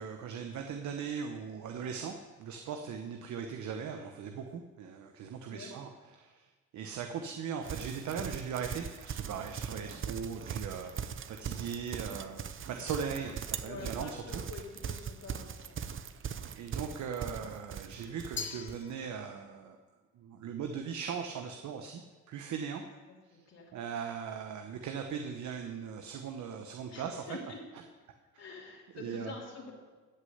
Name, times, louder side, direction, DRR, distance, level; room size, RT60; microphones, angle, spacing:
voice 1, 0.0-6.5 6.7-12.4 12.7-14.2 16.0-16.3 16.5-19.8 20.1-22.0 22.3-22.8 23.3-23.4 23.7-27.2 28.9-29.3, right 6 dB, 70° right, 5 dB, 1.0 m, -39 dB
Livestock farm animals working animals, 7.6-18.8, right 7 dB, 45° right, 0.7 m, -40 dB
voice 2, 13.6-15.8 23.1-23.7 26.9-27.6 28.3-29.7, left 3 dB, 55° left, -3 dB, 3.1 m, -46 dB
Glass, 18.4-19.6, left 6 dB, 40° left, 1.4 m, -42 dB
13.0 x 6.5 x 8.0 m, 1.4 s
cardioid pair, 90°, 30 cm